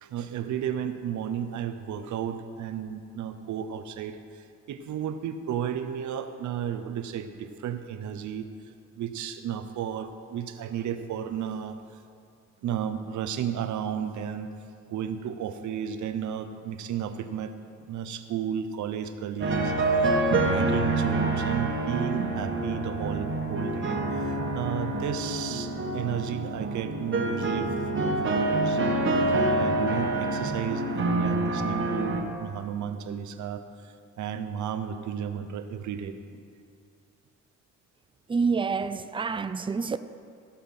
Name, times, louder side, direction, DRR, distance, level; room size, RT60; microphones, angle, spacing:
voice 1, 0.0-8.5 9.0-12.0 12.6-14.5 14.9-17.5 17.8-28.9 29.6-36.4, right 8 dB, 70° right, 0.9 m, -33 dB
sound 1, 19.4-32.2, right 2 dB, 40° right, 1.6 m, -27 dB
voice 2, 38.3-40.0, right 5 dB, 15° right, 0.5 m, -27 dB
17.0 x 5.8 x 5.7 m
cardioid pair, 90°, 30 cm